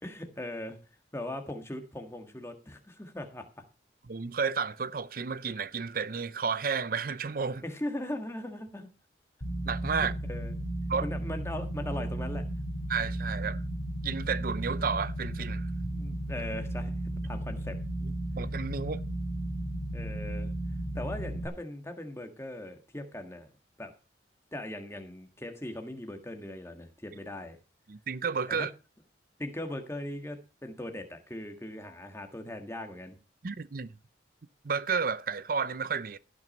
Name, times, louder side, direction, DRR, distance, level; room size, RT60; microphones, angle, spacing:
voice 1, 0.0-0.8 1.1-3.6 7.6-8.9 10.3-10.5 11.0-12.5 15.9-17.0 17.2-17.8 19.9-20.5 20.9-23.5 23.8-23.9 24.5-27.6 28.5-28.7 29.4-33.2, left 1 dB, 15° left, 1.7 m, -39 dB
voice 2, 4.1-7.6 9.6-10.1 10.9-11.1 12.9-13.6 14.0-15.7 18.0-19.0 27.9-28.7 33.4-33.9 34.6-36.2, right 5 dB, 50° right, 0.6 m, -32 dB
sound 1, 9.4-21.5, right 1 dB, 55° left, 2.9 m, -34 dB
16.0 x 6.2 x 5.4 m
head